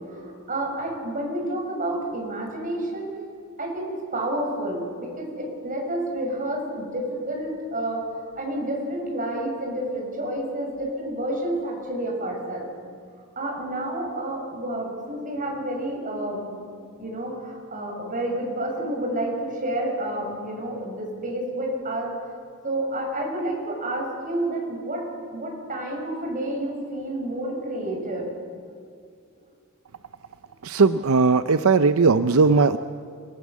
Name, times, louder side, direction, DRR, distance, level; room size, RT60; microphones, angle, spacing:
voice 1, 0.0-3.1 3.6-8.0 8.4-12.7 13.3-16.6 17.0-22.1 22.6-28.3, right 1 dB, 40° right, 0 dB, 6.8 m, -29 dB
voice 2, 30.6-32.8, right 4 dB, 80° right, 11 dB, 0.6 m, -18 dB
30.0 x 19.0 x 7.5 m, 2.3 s
head